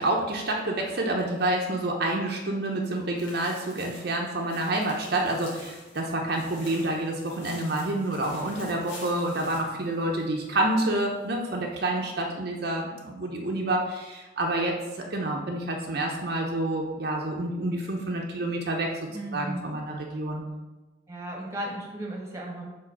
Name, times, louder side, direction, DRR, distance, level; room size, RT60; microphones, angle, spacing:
voice 1, 0.0-19.0 19.3-20.4, right 1 dB, 60° right, 0 dB, 0.7 m, -28 dB
sound 1, 2.8-10.5 10.9-11.0 11.5-11.6, left 2 dB, 85° left, 2.0 m, -47 dB
voice 2, 19.1-19.6 21.1-22.7, right 1 dB, 15° right, -1 dB, 1.2 m, -35 dB
4.9 x 4.2 x 5.9 m, 1.1 s
head